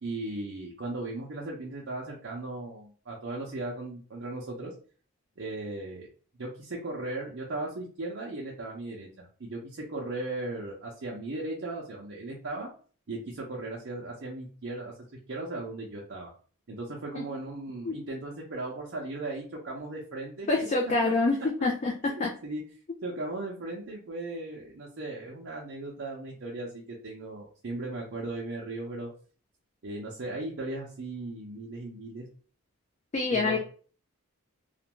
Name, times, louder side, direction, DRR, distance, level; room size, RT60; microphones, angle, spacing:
voice 1, 0.0-4.7 5.4-6.1 6.4-12.7 13.1-14.9 15.3-16.3 16.7-20.5 21.0-21.1 22.0-22.6 23.0-29.1 29.8-32.2 33.3-33.6, right 2 dB, 60° right, -3 dB, 0.5 m, -37 dB
voice 2, 20.5-21.9 22.2-22.3 33.1-33.6, left 3 dB, 30° left, 0 dB, 0.3 m, -26 dB
2.5 x 2.1 x 2.9 m, 0.41 s
head